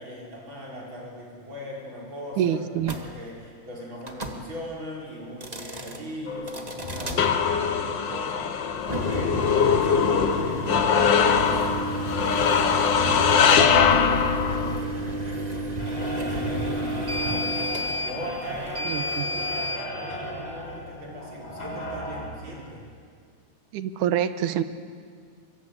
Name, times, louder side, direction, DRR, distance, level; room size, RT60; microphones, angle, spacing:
voice 1, 0.0-12.2 12.5-22.8, equal, 40° right, -3 dB, 6.3 m, -39 dB
voice 2, 2.4-3.0 18.9-19.3 23.7-24.6, right 10 dB, 85° right, 12 dB, 2.4 m, -26 dB
sound 1, 2.8-3.0 4.0-4.4 5.3-6.0 6.5-7.2 8.8-19.8, right 1 dB, 15° right, 1.4 m, -31 dB
sound 2, 6.3-14.8, left 7 dB, 55° left, 1.3 m, -22 dB
sound 3, 6.8-22.3, left 1 dB, 90° left, 8.2 m, -36 dB
24.5 x 23.0 x 8.3 m, 2.1 s
omnidirectional pair, 3.5 m